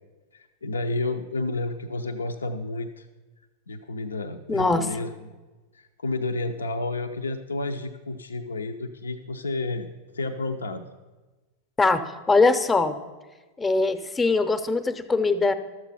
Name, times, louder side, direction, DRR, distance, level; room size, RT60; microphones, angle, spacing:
voice 1, 0.3-3.1 3.7-5.4 5.7-9.9 10.1-10.8, left 2 dB, 75° left, 6 dB, 0.5 m, -31 dB
voice 2, 4.5-4.8 11.8-12.0 12.3-13.0 13.6-15.5, left 3 dB, 15° left, 11 dB, 0.7 m, -21 dB
12.5 x 7.3 x 5.5 m, 1.2 s
figure-of-eight pair, 90°, 0 cm